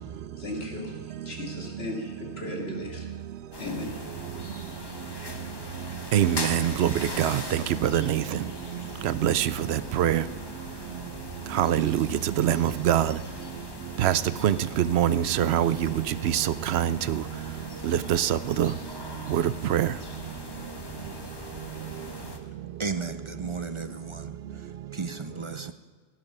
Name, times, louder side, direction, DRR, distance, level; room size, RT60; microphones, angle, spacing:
voice 1, 0.4-3.1 3.6-4.0, left 1 dB, 70° left, 1 dB, 2.3 m, -36 dB
sound 1, 3.5-22.4, left 2 dB, 25° left, 1.2 m, -40 dB
voice 2, 6.1-8.4 9.0-10.2 11.5-12.1 12.4-13.2 14.0-17.2 17.8-18.7 19.3-19.4 19.7-19.9, right 11 dB, 75° right, 16 dB, 0.8 m, -24 dB
voice 3, 22.8-25.7, right 4 dB, 35° right, 10 dB, 0.5 m, -35 dB
17.5 x 9.7 x 5.4 m, 1.6 s
omnidirectional pair, 1.1 m